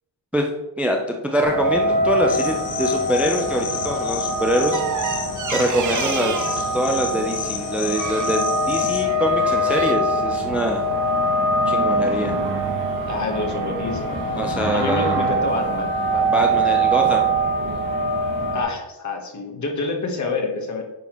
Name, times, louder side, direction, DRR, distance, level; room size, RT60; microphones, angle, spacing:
voice 1, 0.8-4.8 5.5-10.8 11.7-12.4 14.4-15.2 16.3-17.3, equal, 5° right, 2 dB, 0.4 m, -24 dB
sound 1, 1.4-18.6, right 1 dB, 60° right, 2.0 m, -23 dB
sound 2, 2.3-9.0, left 7 dB, 75° left, 1.1 m, -32 dB
sound 3, 4.7-6.6 7.9-8.4 9.0-9.9, right 6 dB, 45° right, 0.6 m, -30 dB
voice 2, 13.1-16.6 18.5-20.8, left 3 dB, 40° left, 2 dB, 1.2 m, -28 dB
9.2 x 5.6 x 3.0 m, 1.0 s
wide cardioid pair, 160°, 43 cm